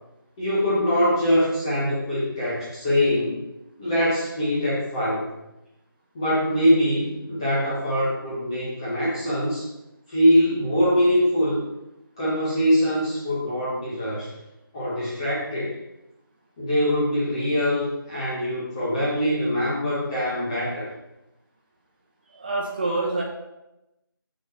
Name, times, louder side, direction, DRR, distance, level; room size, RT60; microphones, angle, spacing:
voice 1, 0.4-3.4 3.8-5.2 6.1-9.7 10.1-11.6 12.2-14.3 14.7-15.7 16.6-20.9, equal, 15° left, -9 dB, 1.3 m, -23 dB
voice 2, 22.3-23.2, right 2 dB, 25° right, -2 dB, 1.4 m, -26 dB
7.8 x 6.2 x 4.5 m, 0.92 s
figure-of-eight pair, 175°, 12 cm